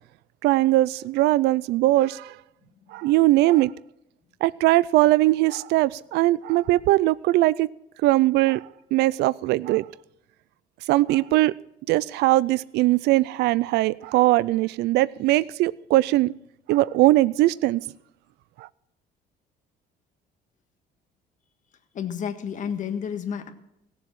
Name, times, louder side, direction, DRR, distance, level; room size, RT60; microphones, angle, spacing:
voice 1, 0.4-2.3 2.9-3.7 4.4-7.7 8.0-9.9 10.9-11.5 11.9-16.3 16.7-17.8 18.6-18.7, right 17 dB, 80° right, 0.4 m, -20 dB
voice 2, 21.9-23.5, left 7 dB, 50° left, 1.6 m, -30 dB
17.5 x 7.4 x 7.5 m
cardioid pair, 110°, 17 cm